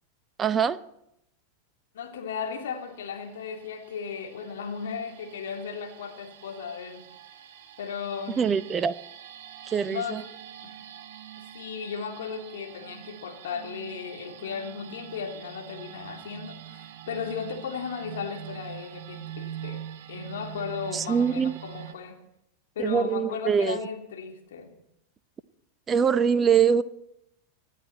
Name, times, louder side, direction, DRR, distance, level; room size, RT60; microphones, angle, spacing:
voice 1, 0.4-0.8 8.4-8.9 9.7-10.2 20.9-21.5 22.8-23.8 25.9-26.8, right 7 dB, 20° right, 15 dB, 0.7 m, -23 dB
voice 2, 1.9-7.1 7.8-8.4 9.9-10.2 10.6-10.8 11.4-19.8 20.1-22.2 22.7-24.7, left 6 dB, 60° left, 2 dB, 2.9 m, -36 dB
sound 1, 2.3-21.9, right 11 dB, 50° right, 3.0 m, -44 dB
27.0 x 11.0 x 4.3 m, 0.80 s
figure-of-eight pair, 90°, 0 cm